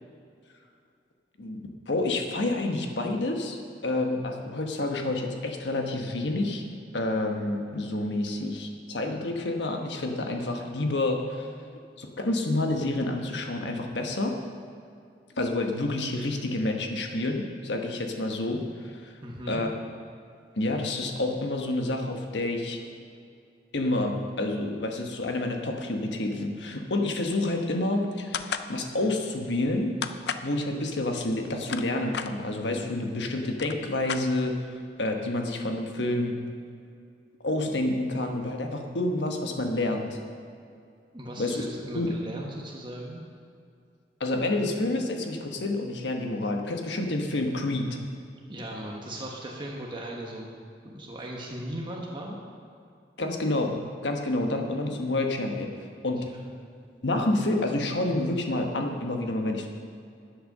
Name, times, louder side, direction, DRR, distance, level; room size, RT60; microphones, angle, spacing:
voice 1, 1.9-6.6 6.9-11.5 12.0-14.3 15.4-19.1 19.5-19.7 20.6-22.8 23.7-29.9 30.4-34.5 35.0-36.3 37.4-40.2 41.4-41.6 41.9-42.1 44.2-48.0 53.2-53.7 54.0-55.7 56.0-56.2 57.0-59.7, left 2 dB, 85° left, 3 dB, 1.2 m, -28 dB
voice 2, 19.2-19.6 41.1-43.2 48.5-50.5 50.8-52.4 56.2-56.5, right 1 dB, 25° right, -2 dB, 1.1 m, -37 dB
sound 1, 28.3-28.7 30.0-30.5 31.4-32.3 33.1-33.2 33.5-34.7, left 7 dB, 65° left, 0.5 m, -33 dB
10.5 x 8.0 x 6.6 m, 2.4 s
head